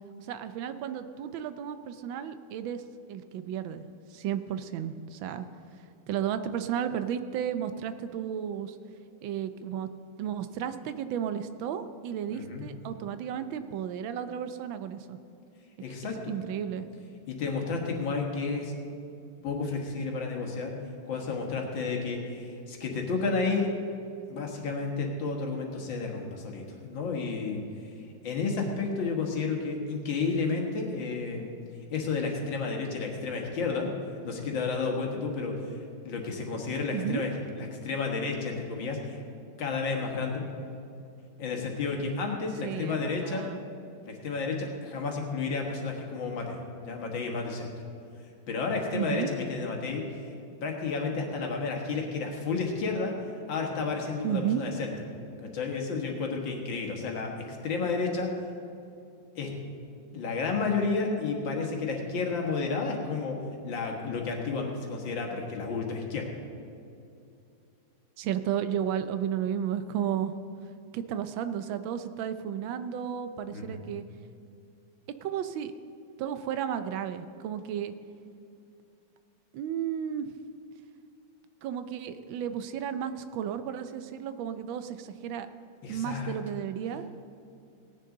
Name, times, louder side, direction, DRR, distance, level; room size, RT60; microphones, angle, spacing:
voice 1, 0.2-2.8 3.1-3.8 4.1-5.5 6.1-8.8 9.2-9.9 10.2-15.2 16.3-16.9 36.9-37.2 42.6-43.6 48.9-49.3 54.2-54.6 68.2-70.3 70.9-74.0 75.2-75.7 76.2-77.9 79.5-80.3 81.6-85.5 85.9-87.1, right 9 dB, 90° right, 10 dB, 1.4 m, -33 dB
voice 2, 12.3-12.7 15.8-16.4 17.3-18.7 19.4-20.7 21.1-23.7 24.3-27.6 28.2-31.5 31.9-33.9 34.2-35.8 36.0-39.2 39.6-40.4 41.4-43.5 44.1-47.7 48.5-50.3 50.6-53.1 53.5-54.9 55.4-58.3 59.4-59.5 60.1-63.4 63.6-66.3 73.5-73.8 85.8-86.4, left 4 dB, 75° left, 1 dB, 2.2 m, -31 dB
17.5 x 10.0 x 3.8 m, 2.7 s
omnidirectional pair, 2.1 m